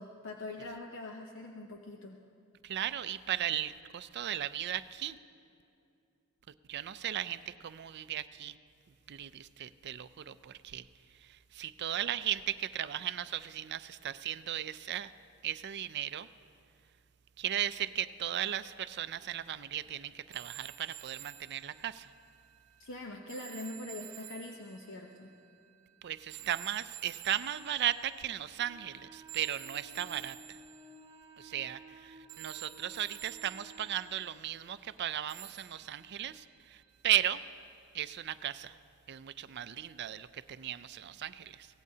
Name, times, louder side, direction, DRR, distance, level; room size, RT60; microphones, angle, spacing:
voice 1, 0.0-2.2 22.8-25.3, left 2 dB, 60° left, 2 dB, 0.8 m, -43 dB
voice 2, 2.6-5.1 6.7-8.5 9.1-10.8 11.5-15.1 15.4-16.3 17.4-22.1 26.0-30.6 31.4-36.4 37.0-37.4 37.9-38.7 39.1-41.7, right 11 dB, 50° right, 14 dB, 0.4 m, -36 dB
sound 1, 20.3-28.5 29.3-32.0 32.3-34.4 35.3-37.5 38.7-38.8, right 14 dB, 75° right, 0.8 m, -51 dB
Wind instrument woodwind instrument, 28.6-34.4, right 1 dB, 20° right, 0.9 m, -55 dB
23.0 x 17.5 x 2.8 m, 2.5 s
head